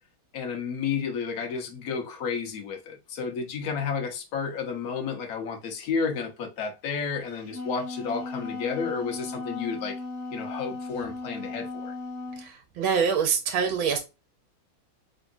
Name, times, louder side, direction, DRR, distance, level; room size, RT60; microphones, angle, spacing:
voice 1, 0.3-9.9 10.3-11.9, left 5 dB, 55° left, 1.3 m, -31 dB
Wind instrument woodwind instrument, 7.3-12.5, left 3 dB, 35° left, 2.0 m, -36 dB
voice 2, 12.4-14.0, right 6 dB, 85° right, 1.6 m, -25 dB
3.8 x 3.5 x 2.6 m
omnidirectional pair, 2.2 m